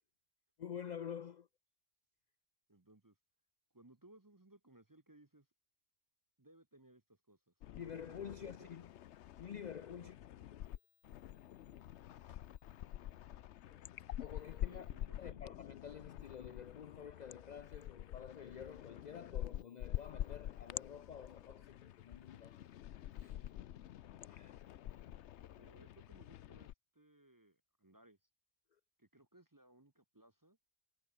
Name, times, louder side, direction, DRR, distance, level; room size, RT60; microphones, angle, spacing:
voice 1, 0.6-1.5 7.8-8.9 9.4-10.2 10.5-10.7 13.7-13.9 14.2-14.9 15.2-22.7 23.2-23.4 24.3-24.7, left 8 dB, 50° left, 0.5 m, -49 dB
voice 2, 2.7-3.1 3.7-5.5 6.4-7.5 7.9-8.9 9.9-10.1 14.6-15.4 25.6-28.2 29.0-30.6, right 1 dB, 20° right, 0.8 m, -64 dB
sound 1, 7.6-10.8 11.0-26.7, left 12 dB, 70° left, 0.9 m, -47 dB
omnidirectional pair, 1.3 m